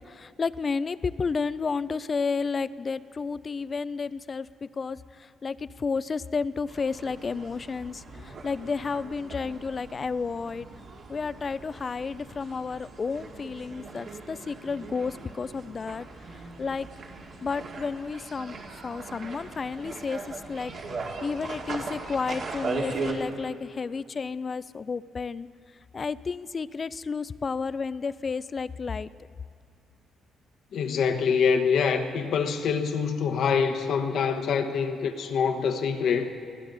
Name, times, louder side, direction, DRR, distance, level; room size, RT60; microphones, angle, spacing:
voice 1, 0.1-5.0 5.4-10.7 11.1-16.1 16.6-16.9 17.4-18.6 18.8-20.7 21.2-25.5 25.9-29.1, left 5 dB, 35° left, 17 dB, 0.4 m, -31 dB
sound 1, 6.7-23.1, right 4 dB, 60° right, 2.2 m, -39 dB
voice 2, 30.7-36.3, left 6 dB, 70° left, 6 dB, 1.1 m, -25 dB
21.0 x 15.0 x 4.0 m, 2.5 s
cardioid pair, 90°, 0 cm